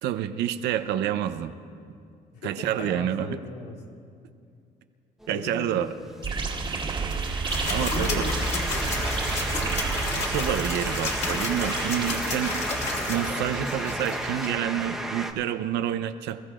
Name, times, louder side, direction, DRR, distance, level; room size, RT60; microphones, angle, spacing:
voice 1, 0.0-1.5 2.4-3.4 5.3-5.9 6.7-6.8 7.7-8.3 10.2-12.6 13.1-16.4, right 11 dB, 85° right, 9 dB, 0.8 m, -28 dB
voice 2, 2.3-3.8 5.3-6.1 6.3-6.5 7.7-9.1, left 3 dB, 80° left, 0 dB, 1.9 m, -37 dB
sound 1, 5.2-15.3, right 1 dB, ahead, 1.0 m, -34 dB
sound 2, 6.2-13.3, right 4 dB, 30° right, 1.6 m, -32 dB
sound 3, 7.5-14.5, left 2 dB, 45° left, 3.1 m, -31 dB
26.5 x 15.0 x 2.5 m, 2.4 s
cardioid pair, 110°, 17 cm